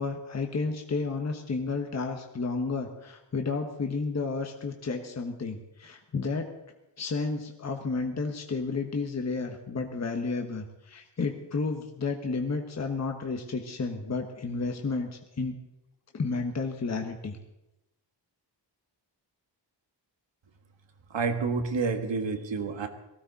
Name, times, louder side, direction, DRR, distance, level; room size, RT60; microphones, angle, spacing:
voice 1, 0.0-6.5 7.0-15.5 16.1-17.4, left 4 dB, 35° left, 3 dB, 1.2 m, -32 dB
voice 2, 21.1-22.9, right 4 dB, 90° right, 6 dB, 1.7 m, -29 dB
19.0 x 15.5 x 4.1 m, 0.93 s
wide cardioid pair, 170°, 43 cm